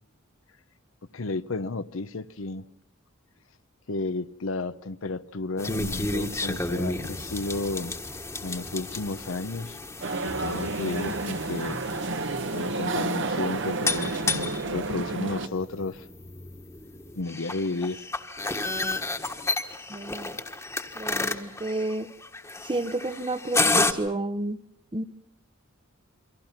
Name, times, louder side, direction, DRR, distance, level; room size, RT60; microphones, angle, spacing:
voice 1, 1.1-2.6 3.9-7.9 8.4-9.8 10.2-11.8 12.5-16.1 17.2-18.0, left 3 dB, 75° left, 0.8 m, -32 dB
sound 1, 5.6-23.9, left 3 dB, 15° left, 1.4 m, -32 dB
sound 2, 10.0-15.5, right 3 dB, 65° right, 1.2 m, -30 dB
voice 2, 19.9-20.3 20.9-22.1 22.6-24.6 24.9-25.0, right 2 dB, 25° right, 0.8 m, -31 dB
28.0 x 24.0 x 5.9 m
head